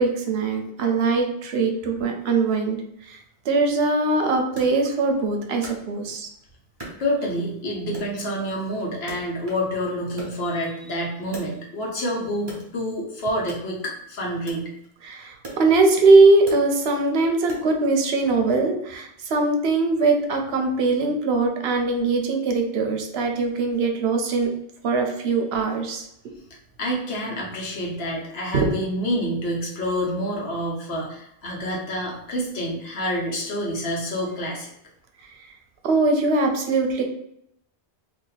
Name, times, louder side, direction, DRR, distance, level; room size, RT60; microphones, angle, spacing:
voice 1, 0.0-3.2 3.4-6.3 15.0-24.5 24.8-26.1 28.5-28.7 35.8-37.0, right 3 dB, 70° right, 4 dB, 0.9 m, -21 dB
Wood, 4.6-6.3 6.8-7.6 7.9-9.8 10.0-12.0 12.4-17.9, right 2 dB, 25° right, 0.9 m, -43 dB
voice 2, 7.0-14.7 26.8-34.7, equal, 70° left, -3 dB, 1.2 m, -28 dB
2.7 x 2.7 x 3.9 m, 0.75 s
omnidirectional pair, 1.1 m